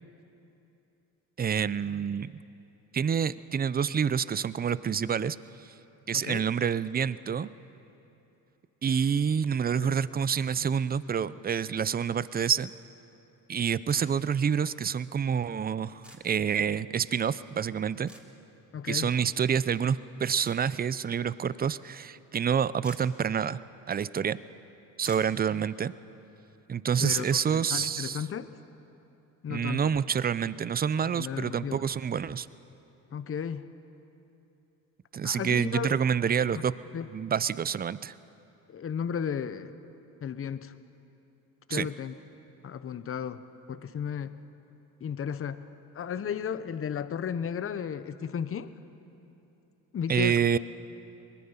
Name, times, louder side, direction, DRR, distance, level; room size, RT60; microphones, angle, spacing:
voice 1, 1.4-2.3 2.9-5.4 5.6-5.7 6.1-7.5 8.8-12.7 13.5-18.1 18.9-23.6 23.9-24.4 25.0-25.9 26.7-28.2 29.5-32.5 35.1-36.7 37.1-38.2 41.7-41.9 50.1-50.6, right 7 dB, 25° right, 17 dB, 0.5 m, -28 dB
voice 2, 6.1-6.5 9.7-10.0 18.7-19.1 27.0-28.5 29.4-29.9 31.1-31.8 33.1-33.7 35.2-36.0 36.5-36.6 36.9-37.1 38.7-39.7 40.2-40.7 41.7-42.1 42.6-43.4 43.7-44.4 45.0-45.6 45.9-48.7 49.9-50.4, left 7 dB, 35° left, 13 dB, 0.9 m, -34 dB
sound 1, 13.9-14.1 16.0-16.2 18.1-18.2 20.4-20.6 22.8-23.0 24.7-24.8 25.0-25.4 27.1-27.4, right 1 dB, 5° right, 2.9 m, -47 dB
23.0 x 20.5 x 5.8 m, 2.8 s
supercardioid pair, 75°, 38 cm